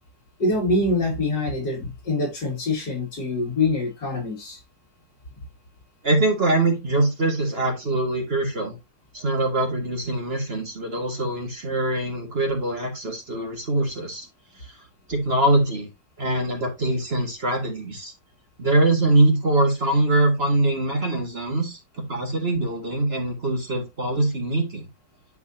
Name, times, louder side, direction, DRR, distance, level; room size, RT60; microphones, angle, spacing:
voice 1, 0.4-4.6, left 2 dB, 80° left, 3.2 m, -24 dB
voice 2, 6.0-8.8 9.1-14.3 14.6-14.8 15.1-15.9 16.2-18.1 18.6-24.9, right 2 dB, 35° right, 2.0 m, -23 dB
11.0 x 4.1 x 2.8 m
omnidirectional pair, 1.8 m